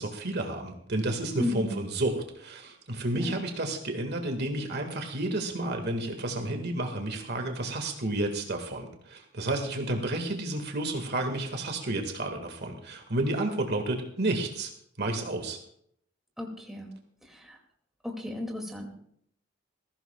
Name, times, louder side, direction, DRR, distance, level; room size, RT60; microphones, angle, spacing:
voice 1, 0.0-14.7 15.0-15.6, right 2 dB, 55° right, 4 dB, 1.8 m, -31 dB
voice 2, 1.4-1.8 3.1-3.3 16.4-16.9 17.2-17.6 18.0-18.9, left 1 dB, ahead, 0 dB, 2.3 m, -34 dB
20.0 x 15.0 x 2.3 m, 0.68 s
head